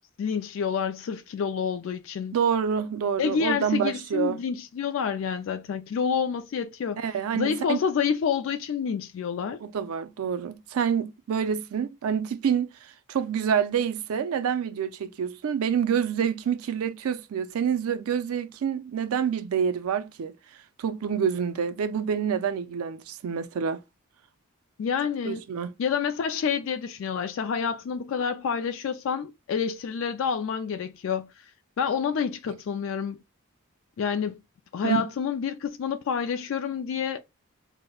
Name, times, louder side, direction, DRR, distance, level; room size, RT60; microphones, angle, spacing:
voice 1, 0.2-2.4 3.2-7.0 7.3-9.6 24.8-25.4 25.8-31.4 31.8-33.2 34.0-34.4 34.7-37.2, left 6 dB, 65° left, 0.3 m, -28 dB
voice 2, 2.3-4.4 7.0-7.8 9.6-20.3 20.8-23.8 25.3-25.7 34.8-35.1, right 7 dB, 85° right, 0.4 m, -27 dB
4.9 x 2.1 x 2.3 m
head